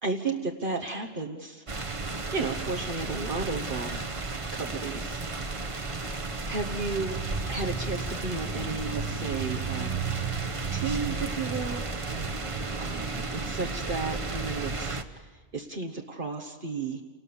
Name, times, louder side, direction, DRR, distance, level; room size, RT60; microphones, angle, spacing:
voice 1, 0.0-1.6 2.3-4.0 4.5-5.6 6.4-7.2 7.5-10.0 10.7-11.8 12.8-17.0, right 4 dB, 55° right, 2 dB, 1.4 m, -33 dB
sound 1, 1.7-15.0, right 3 dB, 35° right, 1.0 m, -33 dB
29.0 x 19.0 x 7.0 m, 1.3 s
omnidirectional pair, 1.0 m